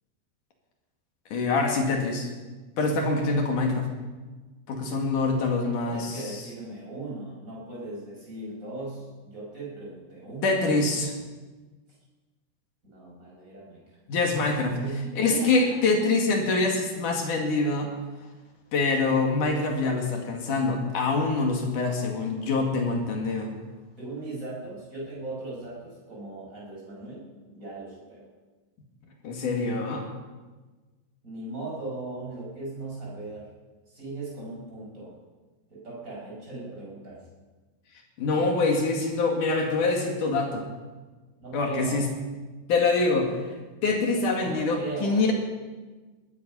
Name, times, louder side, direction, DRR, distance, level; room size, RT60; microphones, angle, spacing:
voice 1, 1.3-2.3 2.8-3.9 4.7-6.1 10.4-11.1 14.1-14.7 15.2-17.9 18.7-23.5 29.2-30.0 38.2-40.7 41.5-42.1 42.7-43.3 43.8-45.3, left 3 dB, 55° left, 2 dB, 3.2 m, -25 dB
voice 2, 5.8-10.5 12.8-13.8 14.7-15.8 24.0-28.3 31.2-33.5 33.9-35.2 35.7-37.2 41.4-42.1 44.4-45.3, right 2 dB, 20° right, -4 dB, 6.2 m, -38 dB
20.0 x 13.0 x 5.4 m, 1.3 s
omnidirectional pair, 4.9 m